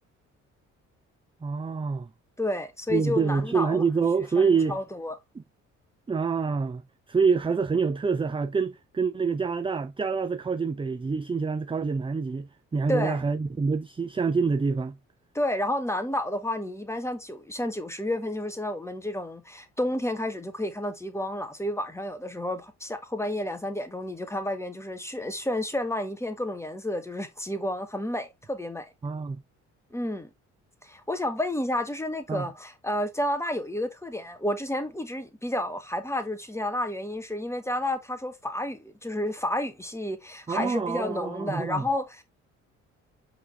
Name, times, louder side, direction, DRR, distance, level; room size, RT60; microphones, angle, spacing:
voice 1, 1.4-2.1 2.9-4.8 6.1-6.8 7.1-15.0 29.0-29.4 32.3-32.5 40.5-41.8, right 5 dB, 15° right, 0.6 m, -26 dB
voice 2, 2.4-3.8 4.4-5.2 12.9-13.2 15.3-28.8 29.9-30.3 30.8-42.2, left 1 dB, 5° left, 1.6 m, -31 dB
7.8 x 3.8 x 3.4 m
figure-of-eight pair, 45°, 38 cm